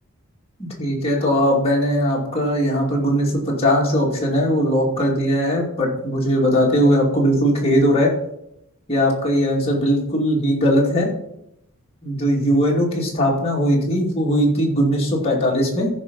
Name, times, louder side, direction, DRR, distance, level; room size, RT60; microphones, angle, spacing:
voice 1, 0.8-8.1 8.9-11.1 12.0-15.9, equal, 25° left, -3 dB, 2.5 m, -19 dB
14.5 x 5.2 x 5.4 m, 0.78 s
head